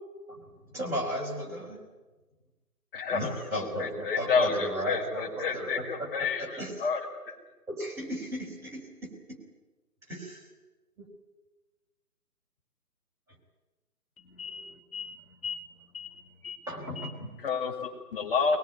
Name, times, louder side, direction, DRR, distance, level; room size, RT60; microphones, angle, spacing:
voice 1, 0.7-1.8 3.1-6.9 7.7-9.4 10.1-10.5 11.0-11.1 16.7-17.3, equal, 5° right, -6 dB, 4.1 m, -35 dB
voice 2, 2.9-7.0 7.3-7.4 17.4-18.6, left 5 dB, 35° left, 0 dB, 5.2 m, -30 dB
voice 3, 14.2-15.6 15.9-16.2 16.4-16.7 17.0-17.1, left 5 dB, 60° left, 4 dB, 2.6 m, -40 dB
23.0 x 21.0 x 9.5 m, 1.2 s
figure-of-eight pair, 145°, 47 cm